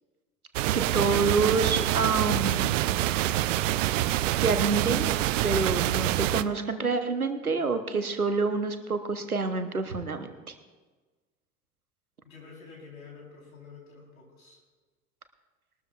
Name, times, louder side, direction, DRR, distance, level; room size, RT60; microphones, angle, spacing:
sound 1, 0.5-6.4, right 14 dB, 65° right, 0.5 m, -26 dB
voice 1, 0.7-2.8 4.4-5.1 5.4-10.5, right 4 dB, 90° right, 8 dB, 1.0 m, -27 dB
voice 2, 12.2-14.6, left 5 dB, 75° left, -1 dB, 4.1 m, -48 dB
21.0 x 12.5 x 2.4 m, 1.3 s
figure-of-eight pair, 70°, 42 cm